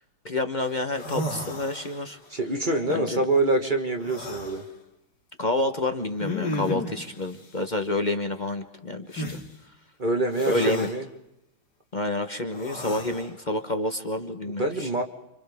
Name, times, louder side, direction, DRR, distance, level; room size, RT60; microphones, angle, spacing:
voice 1, 0.2-2.2 2.9-3.2 5.4-9.4 10.5-10.9 11.9-14.9, left 2 dB, 35° left, 6 dB, 0.8 m, -28 dB
sound 1, 0.6-0.7 0.9-2.2 4.0-4.6 6.2-7.0 9.1-9.4 10.3-11.0 12.5-13.3, left 1 dB, 55° left, 2.8 m, -33 dB
voice 2, 2.3-4.6 10.0-11.0 14.6-15.0, right 2 dB, 25° right, 4 dB, 1.4 m, -25 dB
30.0 x 26.0 x 3.6 m, 0.89 s
omnidirectional pair, 2.2 m